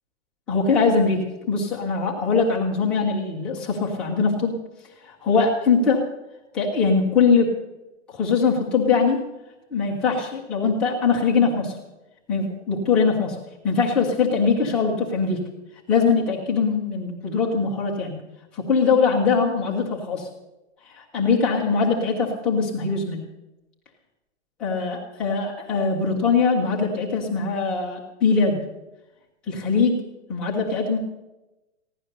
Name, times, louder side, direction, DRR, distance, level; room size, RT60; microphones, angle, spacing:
voice 1, 0.5-4.6 5.0-6.0 6.5-7.5 8.1-9.2 9.7-11.8 12.3-13.4 13.6-15.4 15.9-18.2 18.5-20.3 20.8-23.2 24.6-28.6 29.5-30.0 30.3-31.0, left 4 dB, 5° left, -5 dB, 0.4 m, -22 dB
15.5 x 11.0 x 6.5 m, 1.0 s
hypercardioid pair, 170°, 37 cm